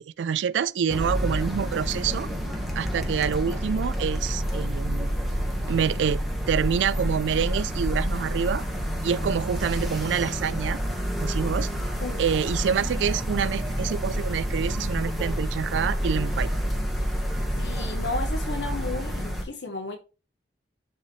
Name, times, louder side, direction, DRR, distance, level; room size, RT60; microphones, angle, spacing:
voice 1, 0.0-2.3 2.8-5.2 5.7-8.6 9.0-10.8 11.2-11.7 12.2-16.5, right 7 dB, 85° right, 0.3 m, -27 dB
sound 1, 0.9-19.4, equal, ahead, 1.3 m, -28 dB
voice 2, 17.6-20.0, left 2 dB, 75° left, 1.0 m, -33 dB
10.5 x 3.8 x 3.1 m
head